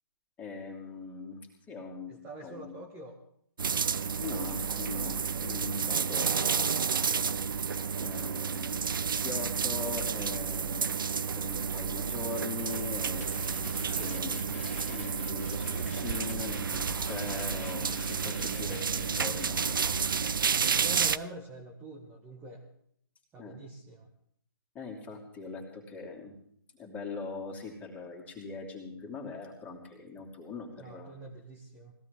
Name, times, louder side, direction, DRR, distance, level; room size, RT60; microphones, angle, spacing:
voice 1, 0.4-2.7 4.2-6.8 8.0-8.7 9.2-10.9 11.3-19.8 23.4-23.5 24.7-26.3 26.7-31.1, left 4 dB, 10° left, 0 dB, 2.9 m, -41 dB
voice 2, 2.1-3.2 18.5-18.8 20.7-22.6 23.3-24.1 30.8-31.9, right 2 dB, 15° right, 0 dB, 1.5 m, -46 dB
sound 1, 3.6-21.2, right 6 dB, 55° right, 0.6 m, -31 dB
sound 2, 13.2-20.2, left 2 dB, 30° left, 2.2 m, -44 dB
21.0 x 16.0 x 3.6 m, 0.66 s
figure-of-eight pair, 135°, 13 cm